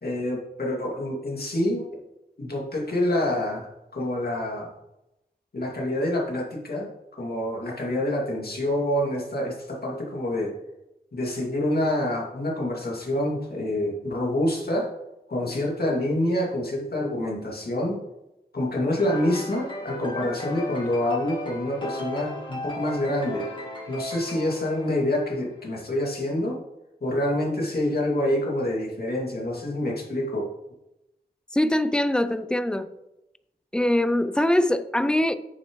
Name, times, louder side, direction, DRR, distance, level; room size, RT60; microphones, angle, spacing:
voice 1, 0.0-1.8 2.4-4.7 5.5-6.9 7.2-10.5 11.1-14.9 15.3-18.0 18.5-23.5 23.9-26.6 27.0-30.5, left 1 dB, 65° left, 2.3 m, -27 dB
sound 1, 19.0-25.6, left 2 dB, 30° left, 1.8 m, -37 dB
voice 2, 31.5-32.9 33.7-35.3, left 1 dB, 5° left, 0.4 m, -22 dB
9.1 x 7.0 x 3.1 m
wide cardioid pair, 90°, 17 cm